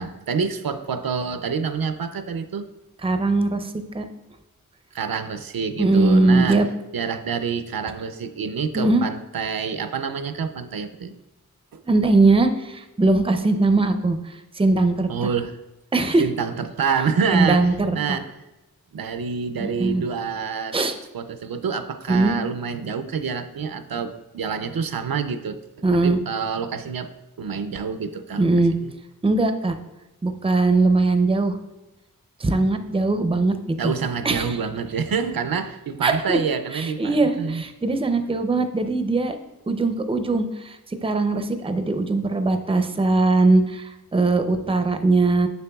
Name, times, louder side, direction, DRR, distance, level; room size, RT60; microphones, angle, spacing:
voice 1, 0.0-2.7 4.9-6.6 6.9-11.1 11.7-11.8 15.1-15.5 16.2-17.7 17.9-18.3 18.9-20.8 21.1-25.6 26.0-27.1 27.4-28.5 28.8-28.9 33.8-37.6, right 6 dB, 75° right, 10 dB, 0.5 m, -27 dB
voice 2, 3.0-4.1 5.8-6.7 8.7-9.0 11.9-15.3 15.9-16.2 17.3-18.2 19.6-20.0 20.7-20.9 22.1-22.4 25.8-26.2 28.4-28.7 29.2-29.7 30.2-31.6 32.4-33.5 33.8-33.9 34.2-34.6 36.0-36.4 36.7-39.4 39.7-45.5, right 3 dB, 15° right, 8 dB, 0.4 m, -20 dB
6.8 x 6.6 x 2.3 m, 1.0 s
wide cardioid pair, 55°, 35 cm